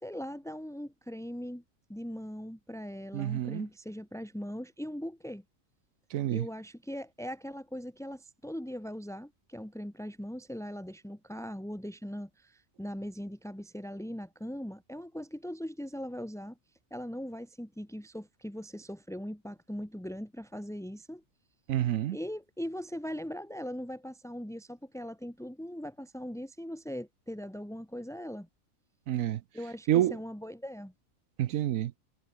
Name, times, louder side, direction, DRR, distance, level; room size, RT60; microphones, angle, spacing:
voice 1, 0.0-1.6 1.9-5.4 6.3-16.6 16.9-21.2 22.1-28.5 29.5-30.9, equal, ahead, 2.6 m, -40 dB
voice 2, 3.1-3.6 6.1-6.5 21.7-22.2 29.1-29.4 29.9-30.1 31.4-31.9, right 12 dB, 80° right, 1.1 m, -28 dB
omnidirectional pair, 1.4 m